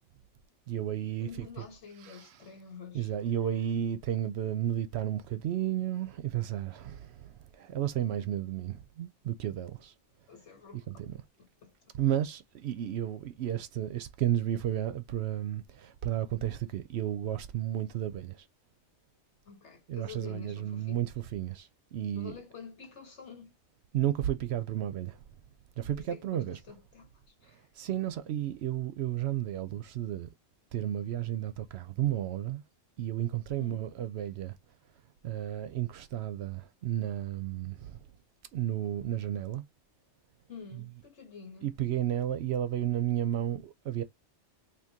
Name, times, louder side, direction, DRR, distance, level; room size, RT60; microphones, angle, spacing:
voice 1, 0.7-1.5 2.0-2.3 2.9-9.9 10.9-11.1 11.9-18.5 19.9-22.3 23.9-25.2 25.8-26.6 27.8-30.3 30.7-32.6 33.0-34.6 35.2-38.0 38.5-39.6 40.7-40.8 41.6-44.0, right 11 dB, 70° right, 0.8 m, -32 dB
voice 2, 1.2-3.1 10.3-11.0 11.4-11.7 19.4-21.0 22.1-23.5 25.9-27.7 33.6-33.9 40.5-41.7, left 6 dB, 75° left, 1.5 m, -48 dB
3.7 x 2.7 x 2.7 m
omnidirectional pair, 1.2 m